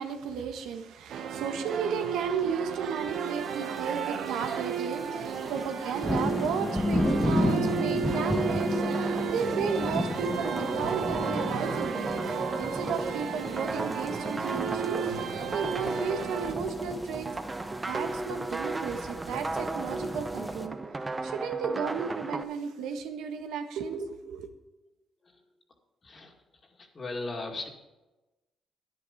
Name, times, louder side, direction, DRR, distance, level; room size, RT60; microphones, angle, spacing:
voice 1, 0.0-12.1 12.6-17.3 17.9-20.8 21.2-24.5, right 6 dB, 90° right, 6 dB, 1.3 m, -34 dB
sound 1, 1.1-16.5, right 7 dB, 70° right, 1.0 m, -34 dB
sound 2, 3.5-3.9 4.3-4.5 4.9-20.7, left 1 dB, 10° left, 1.2 m, -33 dB
sound 3, 7.7-22.4, right 2 dB, 25° right, 0.8 m, -35 dB
voice 2, 7.9-8.4 25.2-25.5 26.0-26.3 26.6-27.7, left 2 dB, 35° left, 2 dB, 2.3 m, -40 dB
10.5 x 10.5 x 5.2 m, 1.1 s
cardioid pair, 90°, 0 cm